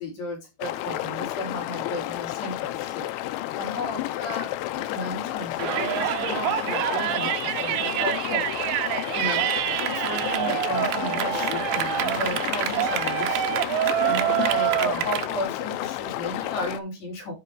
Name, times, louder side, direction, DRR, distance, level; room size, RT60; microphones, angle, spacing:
voice 1, 0.0-4.5 4.7-8.5 9.1-17.3, left 1 dB, 55° left, 0 dB, 5.3 m, -34 dB
sound 1, 0.6-16.8, left 15 dB, 90° left, 3.1 m, -31 dB
Yell, 5.6-15.3, right 13 dB, 90° right, 3.1 m, -26 dB
13.5 x 5.3 x 3.1 m, 0.23 s
omnidirectional pair, 5.3 m